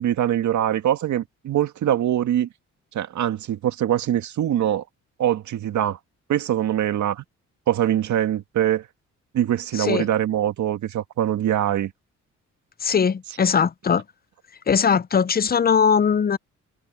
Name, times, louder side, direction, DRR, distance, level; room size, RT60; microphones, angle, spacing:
voice 1, 0.0-2.5 2.9-4.8 5.2-6.0 6.3-7.2 7.7-8.9 9.3-11.9, right 11 dB, 70° right, 2.0 m, -23 dB
voice 2, 9.7-10.1 12.8-14.0 14.7-16.4, left 6 dB, 30° left, 0.7 m, -20 dB
cardioid pair, 90°, 30 cm